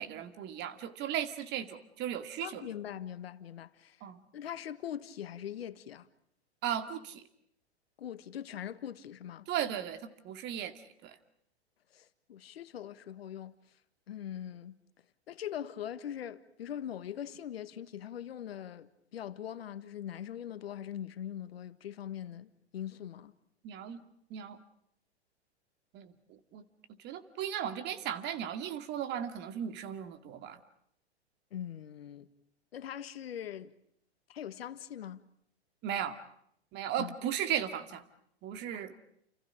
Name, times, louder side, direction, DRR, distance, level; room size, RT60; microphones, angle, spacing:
voice 1, 0.0-2.7 4.0-4.2 6.6-7.2 9.5-10.7 11.0-11.2 23.6-24.0 24.3-24.6 25.9-26.7 27.0-30.6 35.8-36.2 36.7-38.0 38.4-38.9, right 10 dB, 30° right, 2.3 m, -36 dB
voice 2, 2.4-4.0 4.3-6.1 8.0-9.5 11.9-13.5 14.1-14.7 15.3-23.3 31.5-32.3 32.7-33.7 34.3-35.2 37.0-37.3 38.7-39.0, left 10 dB, 60° left, 1.6 m, -42 dB
29.5 x 29.0 x 5.0 m
figure-of-eight pair, 110°, 33 cm